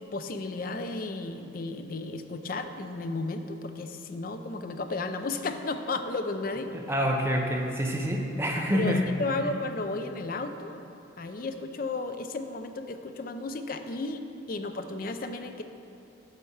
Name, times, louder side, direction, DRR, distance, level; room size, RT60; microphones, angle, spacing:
voice 1, 0.0-6.7 8.7-10.8 11.2-15.6, left 3 dB, 45° left, 8 dB, 0.4 m, -34 dB
voice 2, 6.7-9.1, equal, 10° right, 1 dB, 0.7 m, -27 dB
8.0 x 4.3 x 7.1 m, 3.0 s
head